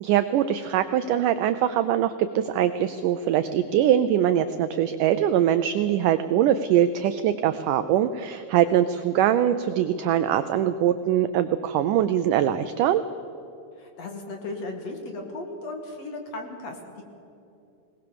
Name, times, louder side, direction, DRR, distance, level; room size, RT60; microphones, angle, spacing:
voice 1, 0.0-13.0, right 10 dB, 90° right, 11 dB, 1.8 m, -22 dB
voice 2, 13.8-17.0, left 2 dB, 50° left, 3 dB, 2.5 m, -36 dB
20.5 x 19.5 x 6.9 m, 2.8 s
omnidirectional pair, 4.4 m